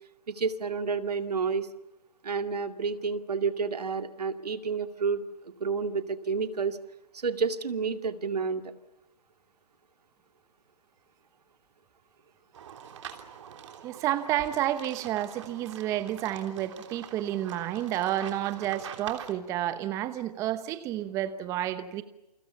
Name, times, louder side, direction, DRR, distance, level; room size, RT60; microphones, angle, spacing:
voice 1, 0.3-1.7 2.2-6.8 7.1-8.7, right 5 dB, 70° right, 8 dB, 2.2 m, -30 dB
sound 1, 12.5-19.3, right 8 dB, 45° right, 3.2 m, -45 dB
voice 2, 13.8-22.0, right 12 dB, 15° right, 12 dB, 0.9 m, -30 dB
29.0 x 24.5 x 7.0 m, 0.94 s
figure-of-eight pair, 145°, 21 cm